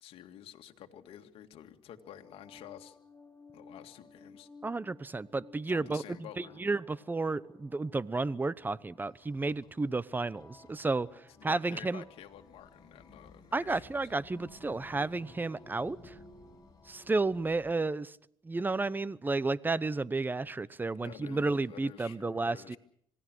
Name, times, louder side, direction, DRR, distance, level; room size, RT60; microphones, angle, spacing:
voice 1, 0.0-3.0 3.5-4.5 5.7-6.6 11.4-13.9 21.0-22.8, left 11 dB, 75° left, 5 dB, 2.2 m, -50 dB
sound 1, 2.0-17.9, left 3 dB, 20° left, 3.4 m, -59 dB
voice 2, 4.6-6.0 6.4-11.1 11.4-12.0 13.5-16.1 16.9-18.2 18.4-22.8, right 3 dB, 20° right, 19 dB, 0.9 m, -32 dB
sound 2, 9.0-17.7, left 2 dB, 40° left, 7.1 m, -56 dB
26.5 x 18.5 x 6.4 m, 0.66 s
cardioid pair, 85°, 10 cm